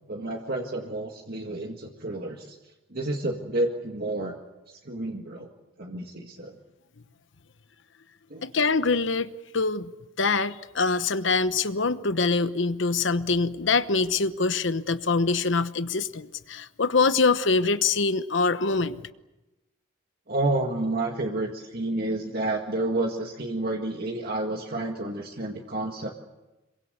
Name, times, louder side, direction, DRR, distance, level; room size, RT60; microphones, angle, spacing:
voice 1, 0.1-2.6 2.9-4.4 4.8-5.5 5.8-6.6 8.3-8.4 20.3-26.1, right 2 dB, 50° right, 2.0 m, -30 dB
voice 2, 8.4-9.3 9.5-9.9 10.2-19.0, left 4 dB, 65° left, 1.0 m, -24 dB
27.0 x 23.0 x 8.2 m
head